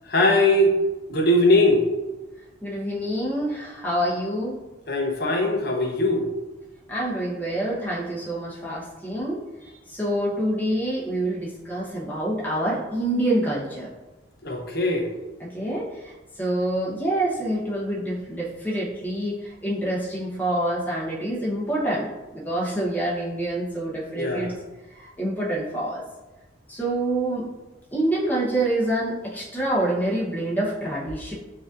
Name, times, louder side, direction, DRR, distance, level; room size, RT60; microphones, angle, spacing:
voice 1, 0.0-0.7 1.1-1.9 4.9-6.3 14.4-15.1 24.1-24.5, left 1 dB, 50° left, 2 dB, 0.7 m, -20 dB
voice 2, 2.6-4.6 6.9-13.9 15.5-24.5 25.0-26.0 26.7-27.5 27.9-31.3, right 1 dB, 10° left, -6 dB, 0.9 m, -27 dB
6.0 x 2.7 x 2.5 m, 1.1 s
head